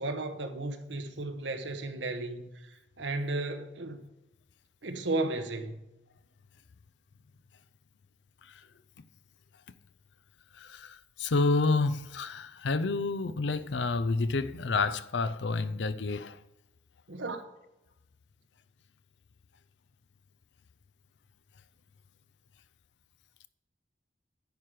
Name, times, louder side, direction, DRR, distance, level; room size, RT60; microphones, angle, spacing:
voice 1, 0.0-2.7 3.0-4.0 4.8-5.8 17.1-17.4, right 2 dB, 90° right, 1.1 m, -34 dB
voice 2, 10.5-16.4, left 3 dB, 85° left, 0.5 m, -29 dB
10.5 x 4.8 x 7.5 m
head